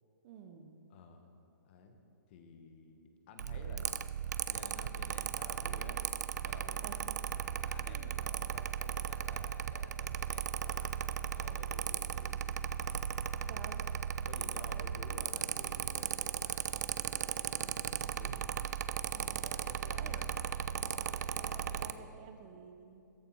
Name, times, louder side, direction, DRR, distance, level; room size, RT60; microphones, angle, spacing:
voice 1, 0.2-0.8 6.8-7.3 7.9-8.1 13.5-13.8 14.5-14.9 19.1-19.5 20.0-20.2 21.3-23.0, right 7 dB, 25° right, 6 dB, 0.7 m, -52 dB
voice 2, 0.9-1.3 1.6-2.0 2.3-3.9 4.4-6.0 6.4-12.4 12.8-13.6 14.2-18.5 18.8-22.1, left 4 dB, 30° left, 5 dB, 1.1 m, -54 dB
Mechanical fan, 3.4-21.9, right 9 dB, 55° right, 0.4 m, -37 dB
14.5 x 11.0 x 4.6 m, 2.7 s
hypercardioid pair, 160°, 11 cm